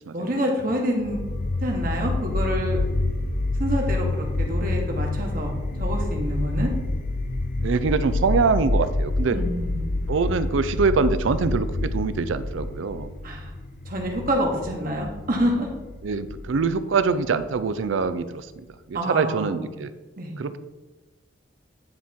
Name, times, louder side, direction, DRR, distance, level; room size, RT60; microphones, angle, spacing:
voice 1, 0.1-1.2 1.6-2.8 3.6-5.5 5.8-6.7 9.3-9.9 13.2-13.5 13.9-15.7 18.9-19.6 20.2-20.3, equal, 45° right, 0 dB, 1.3 m, -27 dB
sound 1, 1.0-18.0, left 2 dB, 45° left, 0.6 m, -28 dB
voice 2, 7.6-9.4 10.1-13.1 16.0-18.5 18.9-19.9 20.4-20.6, right 4 dB, 75° right, 13 dB, 0.4 m, -24 dB
9.7 x 3.6 x 4.3 m, 1.2 s
head